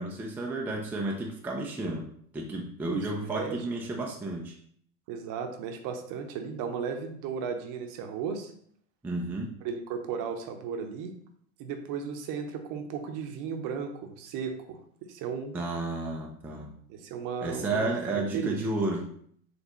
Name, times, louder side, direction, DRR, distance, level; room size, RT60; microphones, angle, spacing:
voice 1, 0.0-2.1 2.3-4.6 9.0-9.5 15.5-16.7 17.4-19.1, right 2 dB, 5° right, 0 dB, 0.4 m, -32 dB
voice 2, 2.8-3.6 5.1-8.5 9.6-11.1 11.6-14.8 15.1-15.5 16.9-18.6, right 6 dB, 50° right, 6 dB, 0.8 m, -35 dB
4.3 x 3.2 x 3.0 m, 0.63 s
hypercardioid pair, 95°, 42 cm